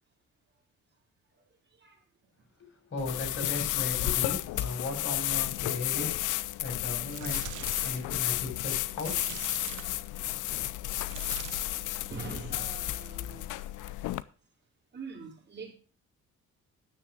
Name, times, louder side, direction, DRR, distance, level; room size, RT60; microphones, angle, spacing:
voice 1, 2.6-6.2 6.6-7.4 7.8-9.1, left 2 dB, 40° left, 0 dB, 6.5 m, -36 dB
sound 1, 3.0-14.2, left 15 dB, 80° left, 0.6 m, -32 dB
sound 2, 7.1-8.1 9.0-10.1 11.0-11.9 12.3-12.6 14.2-14.3, right 12 dB, 80° right, 1.0 m, -43 dB
voice 2, 11.2-13.7 14.9-15.7, right 4 dB, 35° right, 0 dB, 4.3 m, -44 dB
10.0 x 7.2 x 6.3 m, 0.38 s
cardioid pair, 90°, 30 cm